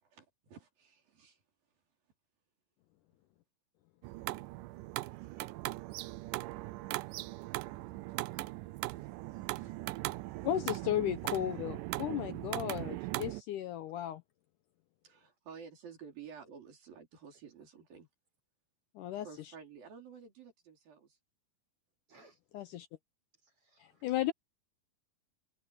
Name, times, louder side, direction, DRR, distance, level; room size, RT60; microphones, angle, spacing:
voice 1, 0.0-1.4 15.0-18.1 19.2-21.2, right 6 dB, 70° right, 6.2 m, -52 dB
sound 1, 4.0-13.4, right 20 dB, 85° right, 1.8 m, -39 dB
voice 2, 5.1-5.5 8.9-9.1 9.4-9.9 10.3-10.9 22.1-22.4 23.4-24.1, right 3 dB, 35° right, 5.9 m, -64 dB
voice 3, 10.4-14.2 19.0-19.3 22.5-22.9 23.8-24.3, left 12 dB, 80° left, 2.0 m, -35 dB
omnidirectional pair, 4.4 m